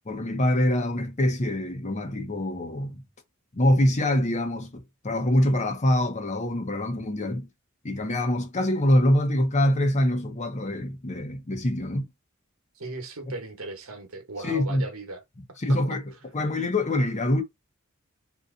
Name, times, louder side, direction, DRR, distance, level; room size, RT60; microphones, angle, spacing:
voice 1, 0.1-3.0 3.5-7.5 7.8-12.1 14.4-14.8 15.6-16.0 16.3-17.4, left 1 dB, 35° left, 0.8 m, -24 dB
voice 2, 12.7-15.2 15.7-16.0, right 2 dB, 90° right, 1.1 m, -37 dB
2.8 x 2.4 x 3.6 m
head